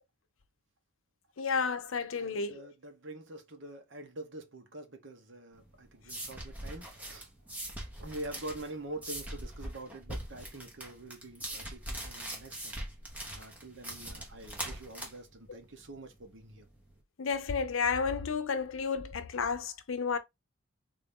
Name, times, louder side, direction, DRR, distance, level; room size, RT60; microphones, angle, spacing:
voice 1, 1.4-2.7 17.2-20.2, left 5 dB, 80° left, 0.6 m, -31 dB
voice 2, 2.2-7.3 8.0-12.8 13.3-16.7, right 2 dB, 65° right, 1.0 m, -45 dB
sound 1, 5.6-16.9, right 1 dB, 10° right, 1.0 m, -42 dB
3.7 x 2.6 x 3.5 m
head